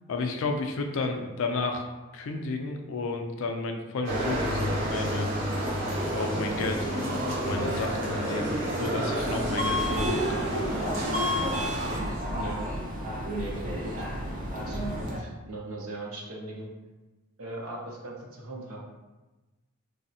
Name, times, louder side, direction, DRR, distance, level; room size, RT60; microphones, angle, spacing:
voice 1, 0.1-1.8 2.1-5.3 6.1-10.5, left 3 dB, 70° left, 4 dB, 0.3 m, -32 dB
sound 1, 4.0-12.0, right 1 dB, 60° right, 0.9 m, -30 dB
voice 2, 8.6-8.9 12.4-12.6 13.3-14.1 14.6-16.7 17.4-18.8, right 2 dB, 85° right, -2 dB, 0.6 m, -39 dB
Subway metro underground, 9.1-15.2, equal, 35° right, 0.4 m, -31 dB
3.3 x 2.0 x 2.7 m, 1.1 s
head